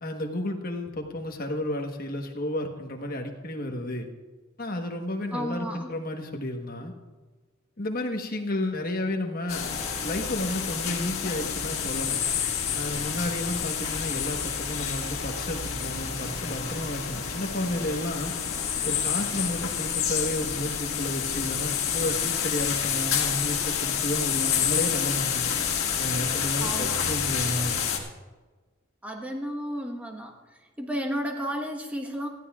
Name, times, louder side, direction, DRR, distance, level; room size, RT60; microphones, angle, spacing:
voice 1, 0.0-4.1 4.6-6.9 7.8-9.7 10.0-12.2 12.7-18.3 18.8-25.5 26.0-27.8, left 1 dB, 45° left, 3 dB, 1.3 m, -32 dB
voice 2, 5.3-5.9 26.6-27.0 29.0-30.3 30.8-32.3, equal, 5° right, 2 dB, 1.2 m, -32 dB
sound 1, 9.5-28.0, left 7 dB, 80° left, 1.7 m, -29 dB
19.0 x 14.0 x 2.4 m, 1.3 s
head